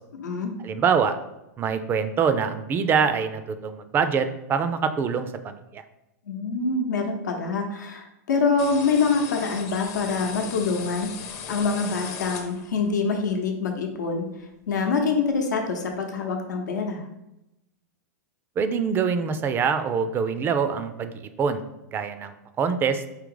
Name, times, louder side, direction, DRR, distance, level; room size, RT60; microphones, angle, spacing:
voice 1, 0.1-0.5 6.3-11.1 11.5-14.3 14.7-17.1, left 4 dB, 85° left, 3 dB, 0.8 m, -25 dB
voice 2, 0.6-1.2 1.6-5.8 18.6-21.6 21.9-23.0, right 6 dB, 25° right, 10 dB, 0.4 m, -25 dB
sound 1, 8.6-12.9, left 6 dB, 35° left, 0.6 m, -38 dB
4.9 x 2.8 x 3.8 m, 0.89 s
hypercardioid pair, 125°, 9 cm